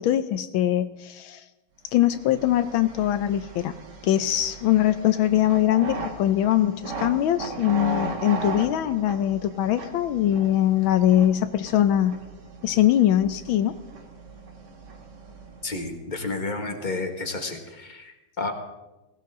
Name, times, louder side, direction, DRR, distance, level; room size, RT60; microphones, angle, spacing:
voice 1, 0.0-1.4 1.9-3.7 4.0-12.2 12.6-13.8, left 12 dB, 75° left, 11 dB, 1.4 m, -22 dB
sound 1, 2.0-15.9, right 3 dB, 55° right, 2.1 m, -38 dB
voice 2, 15.6-18.5, left 3 dB, 25° left, 4 dB, 1.6 m, -31 dB
18.0 x 17.0 x 3.7 m, 1.0 s
omnidirectional pair, 2.3 m